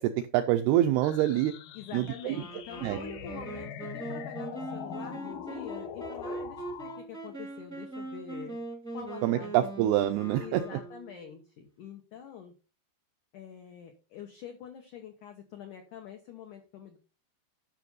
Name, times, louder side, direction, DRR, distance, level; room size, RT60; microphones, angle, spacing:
voice 1, 0.0-1.5 1.9-2.4 2.8-3.0 9.2-10.8, right 13 dB, 85° right, 8 dB, 2.2 m, -26 dB
sound 1, 1.0-7.0, left 8 dB, 70° left, 2.4 m, -42 dB
voice 2, 1.7-8.6 8.9-9.5 10.4-12.5 13.3-17.0, left 8 dB, 85° left, 4 dB, 1.7 m, -45 dB
Wind instrument woodwind instrument, 2.3-11.3, right 2 dB, 5° left, 0.6 m, -41 dB
12.0 x 6.0 x 4.0 m, 0.33 s
omnidirectional pair, 5.2 m